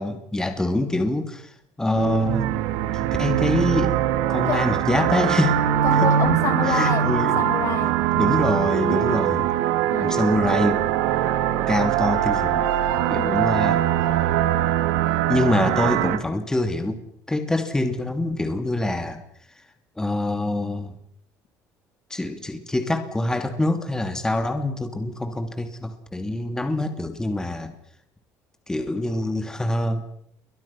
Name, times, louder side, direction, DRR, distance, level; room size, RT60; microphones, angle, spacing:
voice 1, 0.0-1.5 1.8-2.5 3.2-3.9 4.3-5.6 6.0-6.1 6.7-7.3 8.2-9.5 10.0-10.8 11.7-12.7 13.1-13.9 15.3-17.0 17.3-19.2 20.0-20.9 22.1-27.7 28.7-30.0, left 2 dB, 10° left, 7 dB, 3.0 m, -25 dB
sound 1, 1.9-16.2, right 11 dB, 90° right, 2.0 m, -22 dB
voice 2, 4.5-4.8 5.8-7.1 7.4-8.0 9.9-10.4 13.1-13.7, left 8 dB, 55° left, 8 dB, 3.6 m, -28 dB
29.5 x 23.5 x 6.0 m, 0.70 s
cardioid pair, 105°, 6 cm